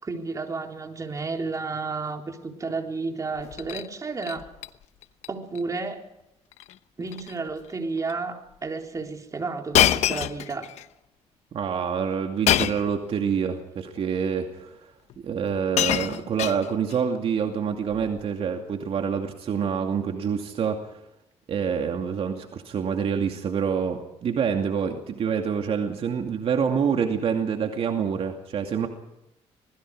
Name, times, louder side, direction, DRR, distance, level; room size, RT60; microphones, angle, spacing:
voice 1, 0.0-4.5 5.3-6.0 7.0-10.7, right 4 dB, 30° right, 3 dB, 3.8 m, -32 dB
Shatter, 3.4-3.9 4.2-4.7 5.0-5.3 5.5-5.6 6.5-6.7 7.1-7.3 8.1-8.2 9.7-10.8 12.5-12.9 14.0-14.1 15.1-15.2 15.5-17.0 17.9-18.2, left 11 dB, 80° left, 1.0 m, -25 dB
voice 2, 11.5-14.8 15.2-21.0 21.5-28.9, right 7 dB, 60° right, 3 dB, 2.5 m, -27 dB
26.0 x 21.0 x 4.9 m, 0.87 s
cardioid pair, 100°, 11 cm